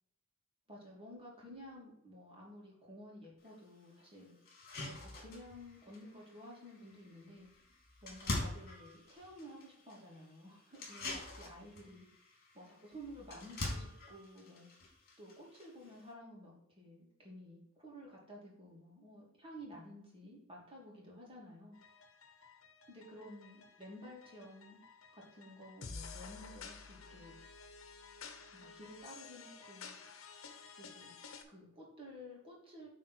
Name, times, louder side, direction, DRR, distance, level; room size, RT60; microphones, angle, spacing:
voice 1, 0.7-4.4 4.8-7.5 8.0-12.1 12.5-14.9 15.2-21.8 22.9-24.8 25.1-27.3 28.5-30.0 30.8-31.1 31.5-32.9, equal, 25° right, -3 dB, 2.8 m, -53 dB
sound 1, 3.4-3.5 4.0-4.1 4.5-16.1, left 2 dB, 50° left, 3.1 m, -45 dB
sound 2, 21.7-31.4, left 5 dB, 75° left, 1.1 m, -52 dB
8.9 x 4.2 x 4.5 m, 0.74 s
head